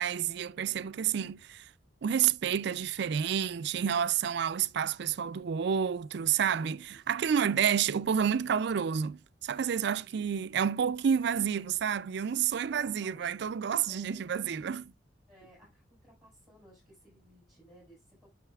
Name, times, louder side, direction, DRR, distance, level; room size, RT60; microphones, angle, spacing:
voice 1, 0.0-1.7 2.0-14.9, right 8 dB, 65° right, 0.4 m, -29 dB
voice 2, 6.7-7.5 9.9-10.3 12.6-13.3 13.8-14.5 15.3-18.3, right 1 dB, ahead, 4.4 m, -59 dB
9.0 x 6.3 x 2.3 m
head